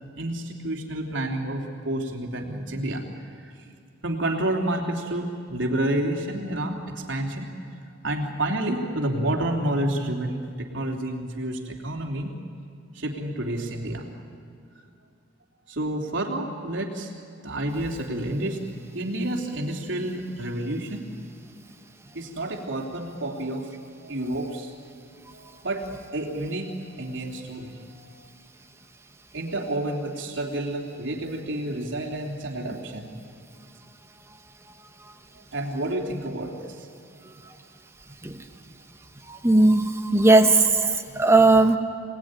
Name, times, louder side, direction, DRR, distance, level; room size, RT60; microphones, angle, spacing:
voice 1, 0.2-3.0 4.0-7.5 8.0-12.3 12.9-14.0 15.7-17.1 17.4-18.6 18.9-21.1 22.1-24.8 25.3-27.7 29.3-33.1 35.5-36.8, right 1 dB, 70° right, 1 dB, 3.4 m, -29 dB
voice 2, 39.3-40.7 41.2-41.8, right 2 dB, 15° right, 6 dB, 1.3 m, -17 dB
27.0 x 18.5 x 9.8 m, 2.3 s
head